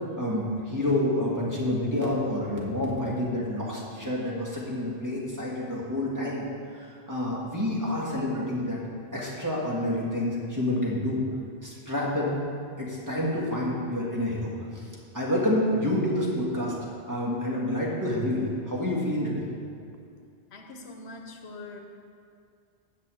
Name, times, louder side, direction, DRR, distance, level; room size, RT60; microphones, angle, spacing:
voice 1, 0.2-6.5 6.7-8.8 9.1-11.2 11.6-12.4 12.8-14.9 15.1-16.7 17.1-19.5, left 1 dB, 15° right, -5 dB, 1.9 m, -28 dB
voice 2, 20.5-21.8, left 2 dB, 80° left, 4 dB, 1.2 m, -43 dB
8.0 x 6.2 x 7.7 m, 2.4 s
omnidirectional pair, 1.1 m